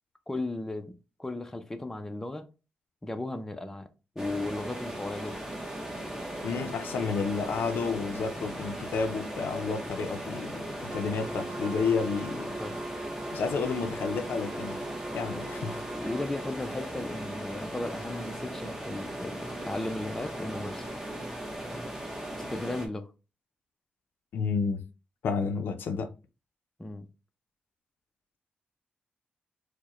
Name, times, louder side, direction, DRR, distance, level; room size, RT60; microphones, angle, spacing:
voice 1, 0.3-2.5 3.0-3.9 4.2-5.4 12.6-12.8 15.9-20.9 22.5-23.1 26.8-27.1, left 2 dB, 10° left, 0.5 m, -35 dB
sound 1, 4.2-22.9, right 1 dB, 10° right, 0.9 m, -38 dB
voice 2, 6.4-12.6 13.3-16.1 24.3-24.8 25.2-26.1, left 5 dB, 80° left, 0.5 m, -31 dB
Wind instrument woodwind instrument, 10.9-16.6, right 2 dB, 45° right, 0.6 m, -41 dB
4.6 x 2.1 x 3.0 m
cardioid pair, 110°, 3 cm